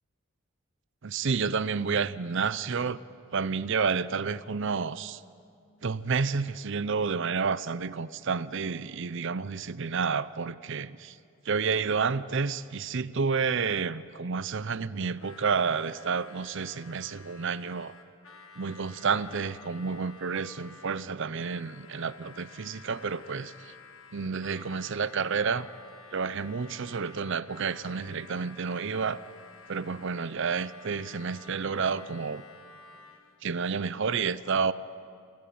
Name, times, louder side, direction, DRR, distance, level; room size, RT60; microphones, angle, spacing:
voice 1, 1.0-3.0 3.3-5.2 5.8-11.2 11.4-17.9 18.6-23.7 24.1-25.7 26.1-29.2 29.7-32.4 33.4-34.7, right 5 dB, 55° right, 17 dB, 0.6 m, -30 dB
Harmonica, 15.2-33.4, left 4 dB, 65° left, 1.6 m, -52 dB
29.0 x 14.0 x 8.7 m, 2.4 s
head